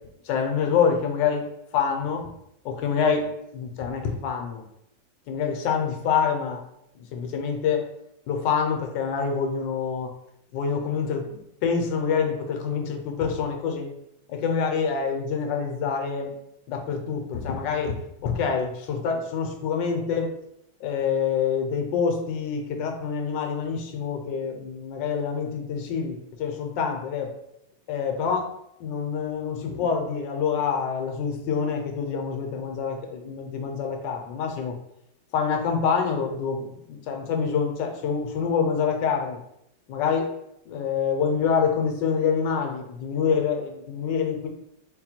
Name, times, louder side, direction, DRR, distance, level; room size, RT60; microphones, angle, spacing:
voice 1, 0.2-1.5 1.7-2.3 2.6-4.6 5.3-6.6 7.0-7.9 8.3-10.1 10.5-13.9 14.3-16.3 16.7-20.3 20.8-27.3 27.9-28.5 28.8-34.8 35.3-39.4 39.9-40.3 40.7-44.5, left 6 dB, 70° left, 4 dB, 1.3 m, -26 dB
4.0 x 2.2 x 4.3 m, 0.79 s
omnidirectional pair, 2.2 m